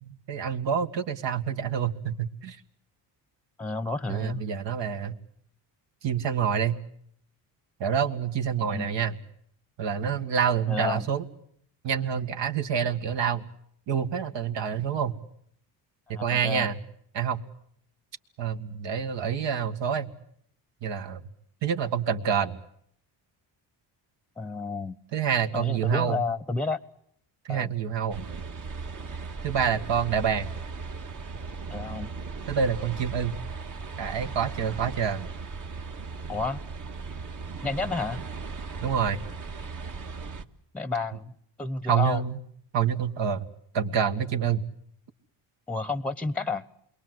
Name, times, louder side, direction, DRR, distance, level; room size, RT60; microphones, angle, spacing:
voice 1, 0.0-2.6 4.1-5.1 6.0-6.8 7.8-9.2 9.8-11.2 11.8-13.4 13.9-15.1 16.1-16.8 17.1-17.4 18.4-20.1 20.8-21.2 21.6-22.6 25.1-26.2 27.5-28.3 29.4-30.5 32.5-33.3 34.0-35.3 38.8-39.2 41.8-42.4 42.7-43.4 43.7-44.6, right 7 dB, 65° right, 7 dB, 2.1 m, -27 dB
voice 2, 3.6-4.4 8.7-8.9 10.7-11.1 16.1-16.7 24.4-25.0 25.5-26.8 27.5-27.7 31.7-32.1 36.3-36.6 37.6-38.2 40.7-41.3 41.6-42.2 45.7-46.7, left 3 dB, ahead, 16 dB, 1.0 m, -30 dB
sound 1, 28.1-40.4, right 4 dB, 40° right, 1.7 m, -37 dB
28.5 x 22.5 x 7.9 m, 0.69 s
cardioid pair, 105°, 46 cm